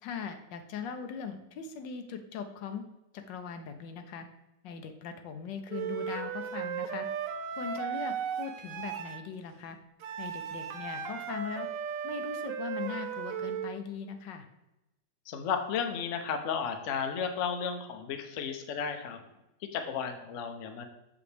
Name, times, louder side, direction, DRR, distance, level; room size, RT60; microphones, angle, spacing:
voice 1, 0.0-2.8 3.1-4.3 4.6-7.1 7.6-9.8 10.2-11.7 12.0-14.5, left 7 dB, 80° left, 7 dB, 1.3 m, -40 dB
Wind instrument woodwind instrument, 5.7-9.2 10.0-13.7, right 7 dB, 80° right, 0.7 m, -36 dB
voice 2, 15.3-19.2 19.7-20.9, left 6 dB, 60° left, 5 dB, 0.8 m, -33 dB
6.9 x 5.0 x 3.3 m, 0.96 s
omnidirectional pair, 1.9 m